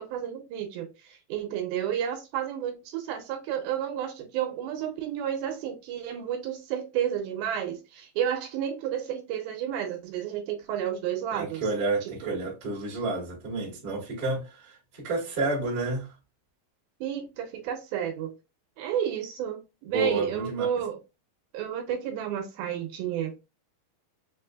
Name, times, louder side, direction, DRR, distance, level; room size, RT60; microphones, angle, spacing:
voice 1, 0.0-11.6 12.0-12.4 17.0-18.3 18.8-21.0 21.5-23.4, right 9 dB, 80° right, 2.3 m, -31 dB
voice 2, 11.3-16.1 19.9-20.6, right 3 dB, 50° right, 0.7 m, -30 dB
5.9 x 2.6 x 2.2 m
omnidirectional pair, 4.6 m